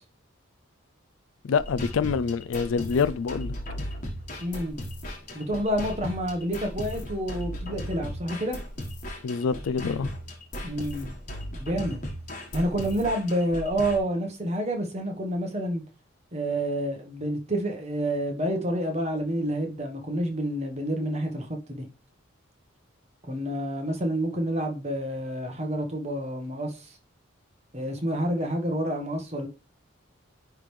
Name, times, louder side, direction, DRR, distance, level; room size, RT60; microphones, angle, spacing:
voice 1, 1.4-3.6 9.2-10.1, left 5 dB, 80° left, 0.4 m, -26 dB
sound 1, 1.6-14.0, equal, 40° left, 1.4 m, -37 dB
voice 2, 4.4-4.8 5.3-8.6 10.6-11.1 11.5-12.0 12.5-15.8 16.3-21.8 23.3-26.9 27.7-29.5, right 1 dB, 30° right, 1.2 m, -29 dB
9.7 x 3.4 x 3.2 m
head